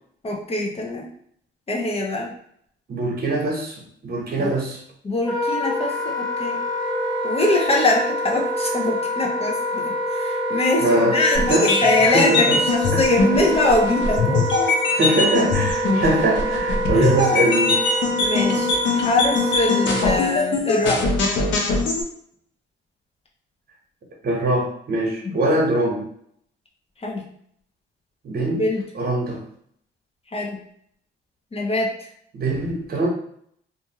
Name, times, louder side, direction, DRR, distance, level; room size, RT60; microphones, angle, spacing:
voice 1, 0.2-1.1 1.7-2.3 4.4-4.5 5.0-6.6 7.2-14.8 17.0-17.1 18.2-21.0 25.2-25.4 27.0-27.3 28.5-28.8 30.3-30.6 31.5-32.1, left 2 dB, 30° left, -1 dB, 0.7 m, -23 dB
voice 2, 2.9-4.8 10.8-11.1 11.5-11.7 12.0-12.6 12.9-13.0 14.9-17.8 24.2-26.1 28.2-28.6 28.9-29.4 32.3-33.1, right 1 dB, 50° right, -1 dB, 1.0 m, -22 dB
Wind instrument woodwind instrument, 5.2-20.2, equal, 5° left, 0.9 m, -26 dB
sound 1, 11.3-22.0, left 3 dB, 70° left, 0.6 m, -22 dB
2.6 x 2.4 x 2.9 m, 0.66 s
cardioid pair, 90°, 20 cm